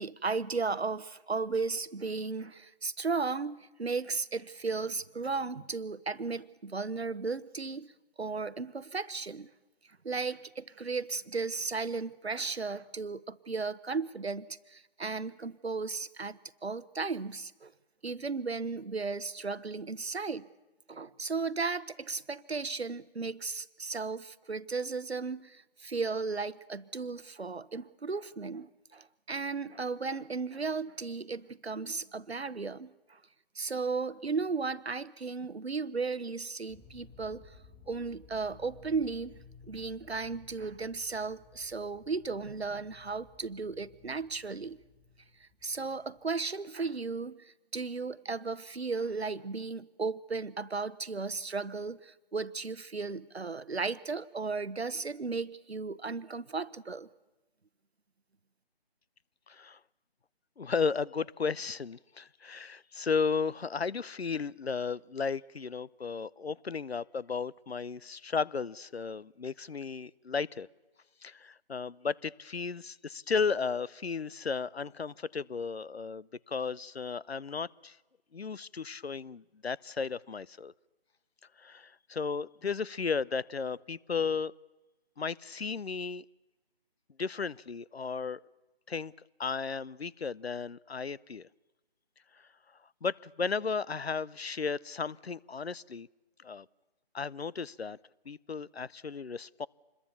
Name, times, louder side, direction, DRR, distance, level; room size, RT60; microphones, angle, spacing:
voice 1, 0.0-7.9 8.2-9.5 10.0-17.7 18.0-20.5 20.9-33.2 33.5-37.6 37.9-39.3 39.7-44.8 45.4-57.1, right 4 dB, 85° right, 17 dB, 1.0 m, -35 dB
sound 1, 36.7-46.2, left 5 dB, 5° left, 2.5 m, -57 dB
voice 2, 59.5-59.8 60.6-70.7 71.2-78.0 78.3-80.7 81.6-84.5 85.2-86.2 87.2-88.4 88.9-89.1 89.4-91.5 93.0-96.1 96.4-96.7 97.1-98.0 98.3-99.7, left 5 dB, 85° left, 23 dB, 0.7 m, -34 dB
27.0 x 21.5 x 7.1 m, 1.1 s
figure-of-eight pair, 155°, 31 cm